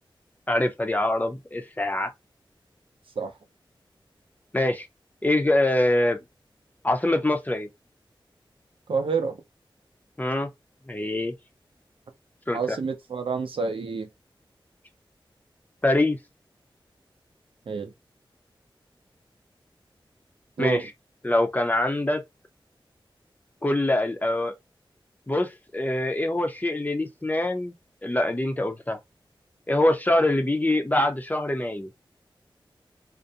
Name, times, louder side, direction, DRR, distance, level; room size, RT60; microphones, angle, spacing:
voice 1, 0.5-2.1 4.5-4.9 5.2-6.2 6.8-7.7 10.2-10.5 10.9-11.3 12.5-12.8 15.8-16.2 20.6-20.9 21.2-22.2 23.6-24.5 25.3-27.7 28.0-29.0 29.7-31.9, left 1 dB, 20° left, 0.6 m, -24 dB
voice 2, 8.9-9.4 12.5-14.1 17.7-17.9 20.6-20.8, right 5 dB, 80° right, 0.6 m, -28 dB
2.5 x 2.1 x 2.7 m
wide cardioid pair, 75°, 9 cm